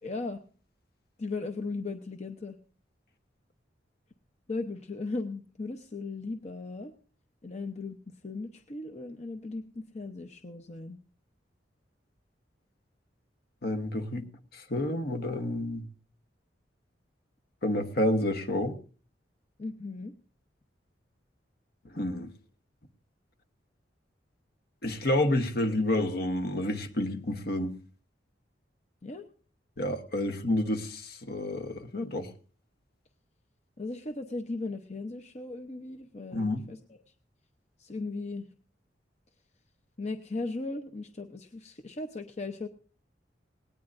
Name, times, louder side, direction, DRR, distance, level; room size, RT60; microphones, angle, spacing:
voice 1, 0.0-0.4 1.2-2.6 4.5-6.9 7.4-8.0 8.2-11.0 19.6-20.1 29.0-29.2 30.3-30.5 33.8-37.0 37.8-38.5 40.0-42.7, left 3 dB, 40° left, 0.8 m, -37 dB
voice 2, 13.6-14.2 14.7-15.8 17.6-18.8 21.9-22.3 24.8-27.7 29.8-32.3 36.3-36.6, left 1 dB, 60° left, 1.2 m, -29 dB
18.5 x 18.5 x 2.6 m
head